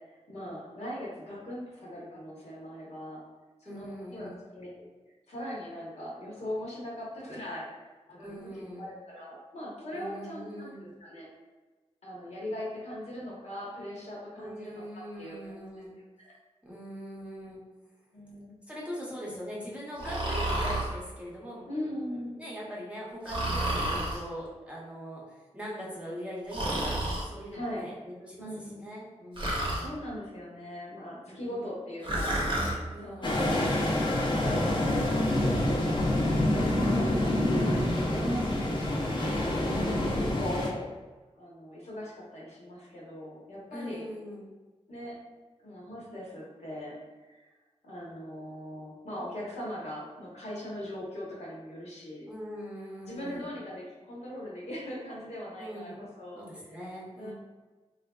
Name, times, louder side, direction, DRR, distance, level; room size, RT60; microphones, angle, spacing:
voice 1, 0.3-3.2 3.6-4.8 5.3-7.7 8.1-11.3 12.0-14.8 15.2-15.6 16.2-16.3 18.1-18.5 21.7-22.4 27.5-27.9 28.4-28.9 29.6-34.1 34.4-34.9 35.5-39.6 40.1-40.9 41.3-44.1 44.9-45.2 45.6-46.9 47.3-47.5 47.8-52.3 53.0-56.4 57.2-57.3, left 1 dB, 70° left, -5 dB, 1.0 m, -40 dB
voice 2, 3.7-4.3 8.2-8.9 9.9-10.8 14.4-15.9 16.6-17.6 18.7-21.6 22.4-30.0 31.2-31.8 32.9-33.5 39.6-40.4 43.7-44.5 52.3-53.5 55.6-56.0 56.3-57.3, equal, 10° right, -5 dB, 0.7 m, -41 dB
Breathing, 20.0-20.9 23.3-24.2 26.5-27.3 29.4-29.9 32.0-32.8, right 1 dB, 45° right, 0.7 m, -30 dB
sound 1, 33.2-40.7, left 1 dB, 45° left, 0.6 m, -27 dB
3.3 x 2.5 x 2.3 m, 1.2 s
wide cardioid pair, 90°, 11 cm